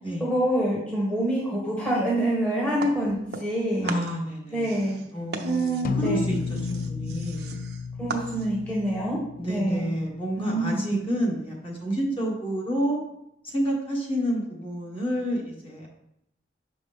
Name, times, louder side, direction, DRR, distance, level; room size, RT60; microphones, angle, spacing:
voice 1, 0.2-3.9 4.5-4.9 5.4-6.2 8.0-9.2 9.5-9.9 10.4-10.8, right 1 dB, 5° left, -5 dB, 1.2 m, -26 dB
sound 1, 2.8-3.6 3.9-8.7, right 3 dB, 65° right, 0.7 m, -38 dB
voice 2, 3.8-7.6 9.4-13.0 13.4-15.9, equal, 30° left, -3 dB, 1.5 m, -29 dB
sound 2, 5.8-10.4, left 4 dB, 50° left, 0.3 m, -32 dB
6.1 x 5.2 x 3.5 m, 0.80 s
head